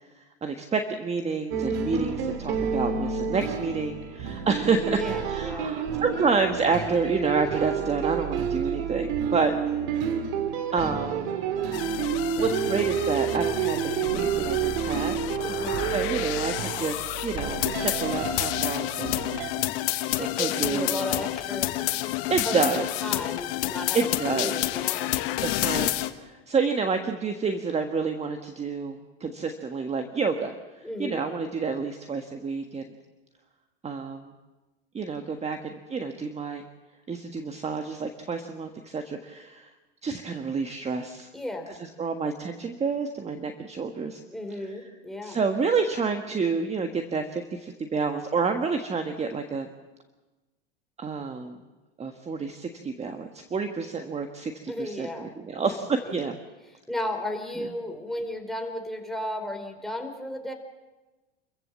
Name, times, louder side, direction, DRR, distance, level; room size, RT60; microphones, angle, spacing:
voice 1, 0.4-9.5 10.7-11.3 12.4-15.2 15.9-19.2 20.4-21.0 22.3-22.9 23.9-24.7 25.4-25.9 26.2-30.5 31.0-32.8 33.8-34.3 34.9-36.6 37.1-39.7 40.0-41.3 41.8-44.2 45.2-49.7 51.0-51.6 52.0-54.5 54.8-56.4, right 4 dB, 20° right, 6 dB, 1.5 m, -29 dB
sound 1, 1.5-19.5, right 7 dB, 65° right, 2.5 m, -29 dB
voice 2, 4.9-5.7 15.4-15.9 20.2-21.7 22.4-25.2 30.8-31.3 41.3-41.8 44.3-45.4 54.7-55.3 56.0-56.2 56.9-60.5, left 1 dB, ahead, 3 dB, 3.9 m, -34 dB
sound 2, 11.7-26.1, left 16 dB, 65° left, 1.4 m, -30 dB
28.5 x 15.0 x 7.4 m, 1.2 s
hypercardioid pair, 95°, 31 cm